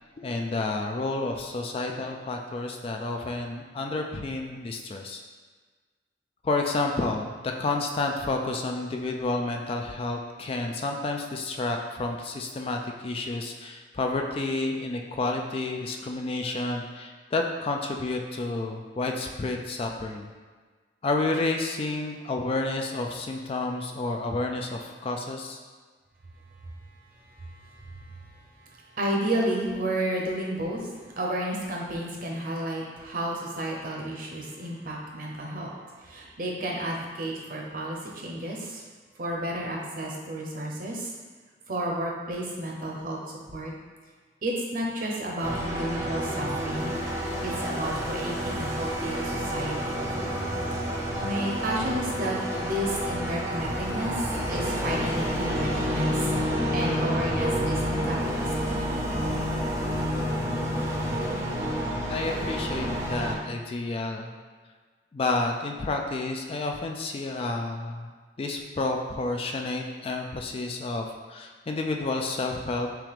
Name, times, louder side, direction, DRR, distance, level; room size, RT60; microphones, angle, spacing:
voice 1, 0.2-5.2 6.4-20.3 21.0-25.6 62.1-64.3 65.1-68.1 68.4-72.9, left 2 dB, 30° left, 2 dB, 0.3 m, -30 dB
voice 2, 27.1-30.9 31.2-38.8 39.2-41.1 41.7-43.2 43.5-43.7 44.4-46.9 47.4-50.5 50.8-52.4 52.6-54.1 54.5-56.3 56.7-58.5, right 1 dB, 50° right, -1 dB, 0.8 m, -32 dB
sound 1, 45.4-63.3, equal, 15° right, 0.6 m, -29 dB
6.0 x 2.4 x 3.4 m, 1.4 s
head